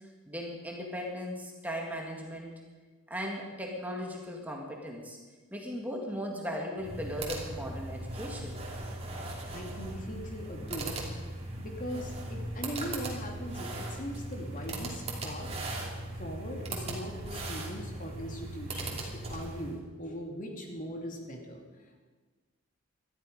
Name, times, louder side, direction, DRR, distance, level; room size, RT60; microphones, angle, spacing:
voice 1, 0.3-2.5 3.1-5.2 5.5-8.6, equal, 10° right, 0 dB, 1.8 m, -37 dB
sound 1, 6.8-19.8, right 2 dB, 30° right, 2.9 m, -38 dB
voice 2, 9.5-10.9 11.6-15.5 16.2-22.0, equal, 40° left, 2 dB, 2.5 m, -40 dB
19.5 x 13.0 x 5.3 m, 1.4 s
head